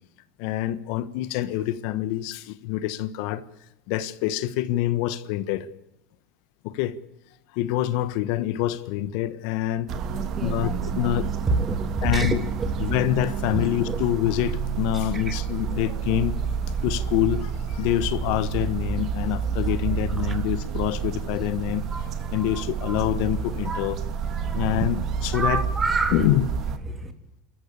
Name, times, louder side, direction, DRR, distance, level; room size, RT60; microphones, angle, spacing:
voice 1, 0.4-3.4 3.9-5.7 6.6-7.0 7.5-9.9 10.4-10.7 11.0-11.3 12.0-12.4 12.8-16.4 16.8-21.8 22.3-24.0 24.5-25.6 26.1-26.4, left 13 dB, 65° left, 1.3 m, -26 dB
sound 1, 9.9-26.8, right 6 dB, 45° right, 2.0 m, -29 dB
voice 2, 10.1-11.2 11.5-12.9 13.5-14.0 15.1-15.3 15.7-15.8 16.6-16.9 20.2-20.3 21.9-23.0 23.6-23.9 24.1-24.8 25.3-26.3 26.8-27.1, right 3 dB, 20° right, 3.0 m, -30 dB
27.0 x 14.0 x 8.4 m
supercardioid pair, 120°, 0 cm